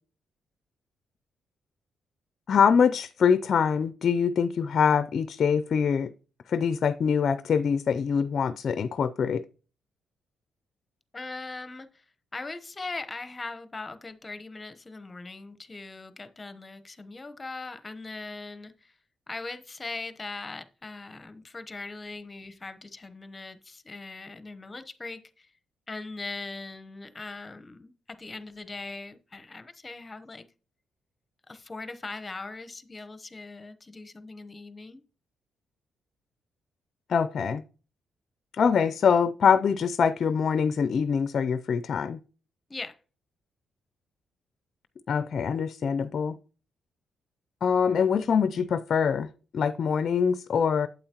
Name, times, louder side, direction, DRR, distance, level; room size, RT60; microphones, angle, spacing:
voice 1, 2.5-6.1 6.5-9.4 37.1-37.6 38.5-42.2 45.1-46.4 47.6-49.3 49.5-50.9, left 6 dB, 55° left, 0.4 m, -24 dB
voice 2, 11.1-12.0 12.3-18.9 19.3-25.5 25.9-30.5 31.5-35.0 42.7-43.0, left 3 dB, 25° left, 0.9 m, -40 dB
8.6 x 7.8 x 2.9 m
cardioid pair, 80°, 0 cm